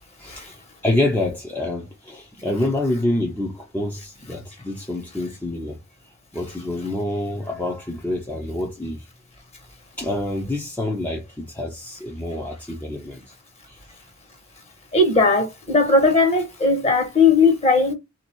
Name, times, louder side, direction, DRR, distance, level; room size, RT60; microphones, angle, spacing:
voice 1, 0.2-5.8 6.3-9.1 10.0-13.2 13.7-13.8, left 1 dB, 10° left, 0.8 m, -27 dB
voice 2, 14.9-17.9, left 3 dB, 30° left, 1.6 m, -17 dB
3.7 x 2.9 x 4.5 m
head